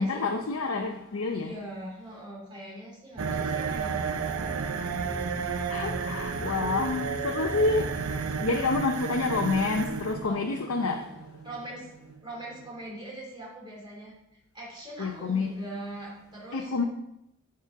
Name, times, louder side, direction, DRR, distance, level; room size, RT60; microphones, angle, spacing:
voice 1, 0.0-1.5 5.7-7.8 8.4-11.1 15.0-15.5 16.5-16.8, left 3 dB, 80° left, 0.7 m, -28 dB
voice 2, 1.3-4.2 10.2-10.5 11.4-11.9 12.2-14.1 14.5-16.7, right 1 dB, 20° right, 2.9 m, -41 dB
sound 1, 3.1-8.5, equal, 10° left, 2.0 m, -40 dB
sound 2, 3.2-12.8, right 6 dB, 90° right, 0.6 m, -33 dB
8.4 x 5.0 x 4.7 m
head